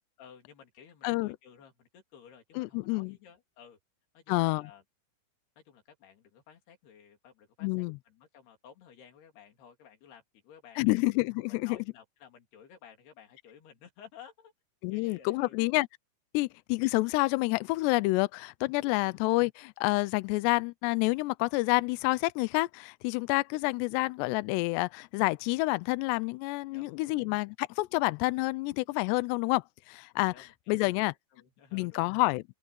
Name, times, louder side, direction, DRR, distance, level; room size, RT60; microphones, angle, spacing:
voice 1, 0.2-3.8 4.1-4.8 5.6-11.0 11.6-14.5 14.9-15.6 19.0-19.2 26.6-27.3 30.3-32.1, left 8 dB, 60° left, 4.8 m, -55 dB
voice 2, 1.0-1.4 2.6-3.2 4.3-4.6 7.6-8.0 10.8-11.8 14.8-15.9 16.3-31.1 31.7-32.4, left 23 dB, 85° left, 2.4 m, -28 dB
open air
omnidirectional pair, 5.5 m